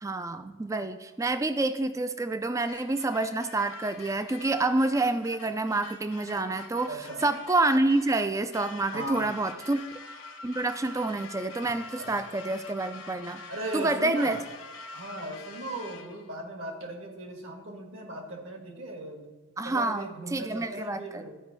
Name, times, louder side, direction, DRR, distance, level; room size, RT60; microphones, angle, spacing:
voice 1, 0.0-6.9 7.2-9.8 10.4-13.4 13.7-14.4 19.6-21.2, right 2 dB, 15° right, 10 dB, 0.3 m, -28 dB
sound 1, 2.6-16.3, left 4 dB, 75° left, 1.1 m, -46 dB
voice 2, 6.9-7.2 8.9-9.4 12.0-12.1 13.5-14.4 14.9-19.3 19.6-21.3, right 1 dB, 65° right, 2 dB, 1.6 m, -38 dB
13.0 x 5.2 x 4.0 m, 1.3 s
head